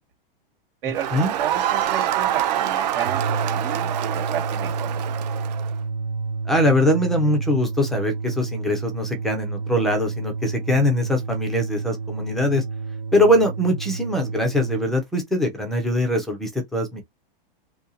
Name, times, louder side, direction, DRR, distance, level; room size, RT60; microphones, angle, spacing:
voice 1, 0.8-5.3, right 9 dB, 65° right, 1.7 m, -33 dB
Crowd, 0.9-5.7, right 11 dB, 45° right, 0.6 m, -25 dB
sound 1, 2.9-14.9, right 4 dB, 80° right, 0.8 m, -30 dB
voice 2, 6.5-12.6 13.1-17.0, left 1 dB, ahead, 0.4 m, -22 dB
2.7 x 2.7 x 3.8 m
supercardioid pair, 160°, 29 cm